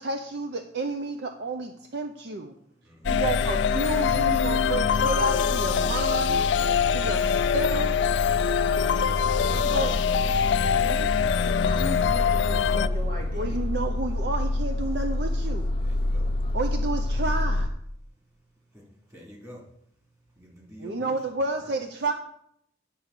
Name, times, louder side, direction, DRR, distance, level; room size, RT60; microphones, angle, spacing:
voice 1, 0.0-2.5 3.1-6.4 6.9-8.0 9.6-10.0 10.3-11.1 13.3-15.7 16.5-17.7 20.8-22.1, right 2 dB, 60° right, 6 dB, 0.6 m, -31 dB
voice 2, 2.8-3.3 15.8-16.3 18.7-18.8 19.1-19.6 20.4-21.2 21.6-21.7, equal, 15° right, -3 dB, 2.7 m, -47 dB
sound 1, 3.0-17.7, left 1 dB, 30° left, 0.6 m, -28 dB
sound 2, 3.1-12.9, left 8 dB, 70° left, 0.3 m, -24 dB
voice 3, 9.4-9.9 10.8-11.0 11.4-13.6, right 1 dB, 45° right, 0 dB, 1.8 m, -38 dB
8.7 x 4.6 x 6.5 m, 0.72 s
head